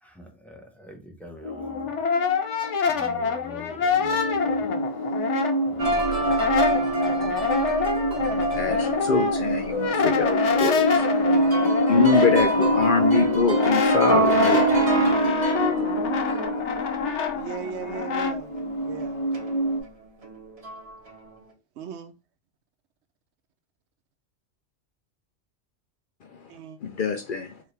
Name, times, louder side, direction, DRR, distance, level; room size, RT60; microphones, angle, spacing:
voice 1, 0.0-2.0 2.9-4.7 5.6-6.8, left 1 dB, ahead, 0.9 m, -45 dB
sound 1, 1.4-3.3 3.8-19.8, equal, 25° left, 1.6 m, -26 dB
Brass instrument, 1.5-5.9 6.2-18.4, left 5 dB, 85° left, 1.1 m, -27 dB
sound 2, 5.8-9.4 9.9-10.0 10.4-18.3 18.6-18.8 19.3-19.8 20.2-20.9, right 3 dB, 35° right, 1.0 m, -28 dB
voice 2, 8.5-14.8 26.2-26.4 26.8-27.6, left 5 dB, 60° left, 0.6 m, -25 dB
voice 3, 17.3-18.5 18.8-19.2 21.8-22.1 26.5-26.8, right 7 dB, 75° right, 0.9 m, -37 dB
4.5 x 3.0 x 3.3 m
omnidirectional pair, 1.2 m